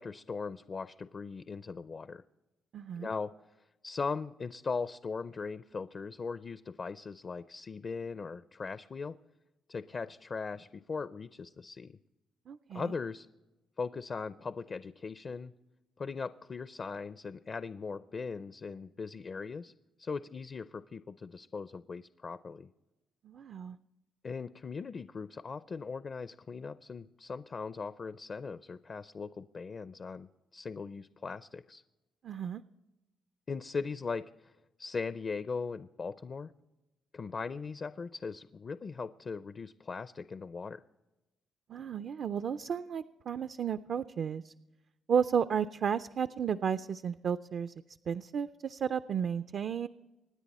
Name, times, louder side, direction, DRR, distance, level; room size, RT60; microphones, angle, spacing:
voice 1, 0.0-2.2 3.0-3.3 3.8-9.2 9.7-12.0 12.7-13.3 13.8-15.5 16.0-19.7 20.0-22.7 24.2-31.8 33.5-34.5 34.8-36.5 37.1-40.8, left 4 dB, 40° left, 13 dB, 0.4 m, -39 dB
voice 2, 2.7-3.1 12.5-12.9 23.2-23.8 32.2-32.6 41.7-44.5 45.1-47.7 48.1-49.9, right 7 dB, 55° right, 11 dB, 0.4 m, -33 dB
25.0 x 9.8 x 4.2 m, 1.0 s
cardioid pair, 90°, 0 cm